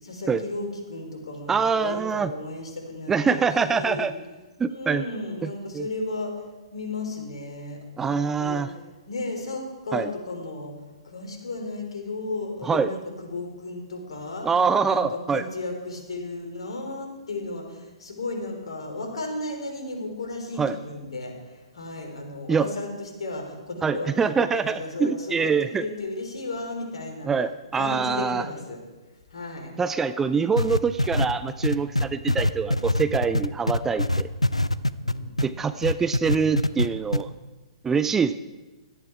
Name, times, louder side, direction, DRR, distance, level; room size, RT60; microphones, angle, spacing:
voice 1, 0.0-4.1 4.7-8.8 9.1-10.7 11.0-14.5 14.9-27.3 27.7-28.8 29.3-29.7 35.0-35.4, left 2 dB, 60° left, 2 dB, 3.8 m, -34 dB
voice 2, 1.5-2.3 3.1-4.1 4.6-5.0 5.4-5.9 8.0-8.7 9.9-10.1 12.6-12.9 14.4-15.4 20.6-20.8 22.5-22.7 23.8-25.8 27.2-28.4 29.8-34.3 35.4-37.3 37.8-38.3, right 5 dB, 10° right, 12 dB, 0.4 m, -24 dB
sound 1, 30.6-35.5 35.8-36.9 37.1-37.2, left 1 dB, 90° left, 0.6 m, -23 dB
17.5 x 12.5 x 4.7 m, 1.2 s
figure-of-eight pair, 120°, 3 cm